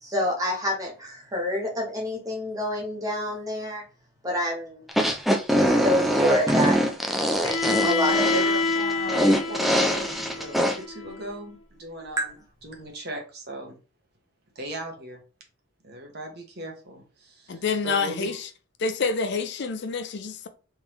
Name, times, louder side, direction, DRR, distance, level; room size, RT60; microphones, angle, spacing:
voice 1, 0.0-3.8 4.2-4.8 5.6-6.9 7.8-8.2 12.2-12.3, equal, 20° right, 1.2 m, -28 dB
sound 1, 4.9-10.8, equal, ahead, 0.4 m, -23 dB
Bowed string instrument, 7.4-11.3, left 3 dB, 90° left, 1.2 m, -27 dB
voice 2, 7.8-12.3 12.6-13.8 14.5-15.2 15.8-18.3, right 1 dB, 55° right, 1.2 m, -37 dB
voice 3, 17.5-18.5 18.8-20.5, left 4 dB, 60° left, 0.5 m, -27 dB
3.5 x 3.2 x 3.0 m
head